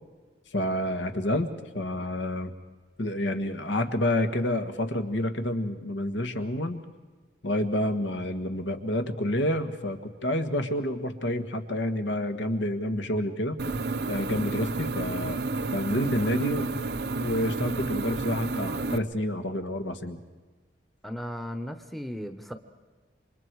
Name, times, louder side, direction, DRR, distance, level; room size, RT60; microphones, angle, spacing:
voice 1, 0.5-2.5 3.0-6.8 7.4-13.6 14.1-15.4 15.7-16.7 17.2-20.2, left 1 dB, 80° left, 7 dB, 1.6 m, -29 dB
sound 1, 13.6-19.0, right 3 dB, 60° right, 0.7 m, -31 dB
voice 2, 21.0-22.5, equal, ahead, 7 dB, 0.8 m, -36 dB
28.5 x 25.0 x 4.7 m, 1.4 s
head